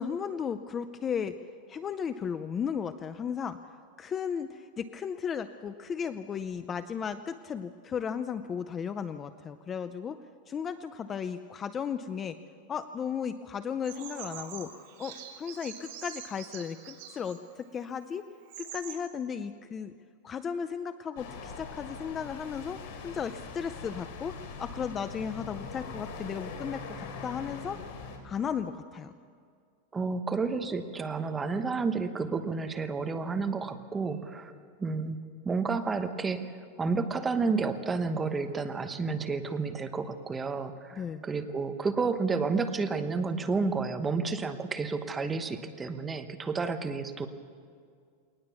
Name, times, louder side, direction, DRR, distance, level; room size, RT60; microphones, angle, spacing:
voice 1, 0.0-1.4 1.7-3.6 4.0-10.2 10.5-12.4 12.7-14.7 15.0-18.3 18.6-19.9 20.2-22.8 23.0-27.8 28.2-29.1 40.9-41.2, left 7 dB, 20° left, 11 dB, 0.5 m, -35 dB
Bird vocalization bird call bird song, 13.8-17.4 18.0-18.1 18.4-18.9, right 8 dB, 55° right, 3.4 m, -44 dB
sound 1, 21.2-28.2, left 4 dB, 55° left, 3.8 m, -42 dB
voice 2, 29.9-35.2 35.4-36.4 36.8-47.3, right 4 dB, 15° right, 8 dB, 1.1 m, -31 dB
21.5 x 19.5 x 7.1 m, 2.2 s
supercardioid pair, 160°, 0 cm